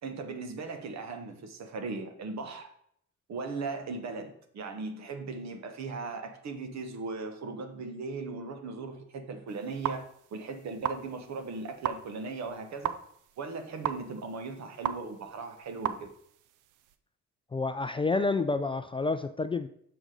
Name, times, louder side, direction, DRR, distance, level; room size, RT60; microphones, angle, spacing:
voice 1, 0.0-2.7 3.3-10.1 10.3-12.9 13.4-16.1, right 3 dB, 65° right, 7 dB, 1.1 m, -38 dB
sound 1, 9.5-17.0, right 12 dB, 85° right, 0.6 m, -38 dB
voice 2, 17.5-19.7, left 3 dB, 20° left, 10 dB, 0.3 m, -29 dB
6.7 x 6.1 x 3.8 m, 0.69 s
cardioid pair, 90°, 30 cm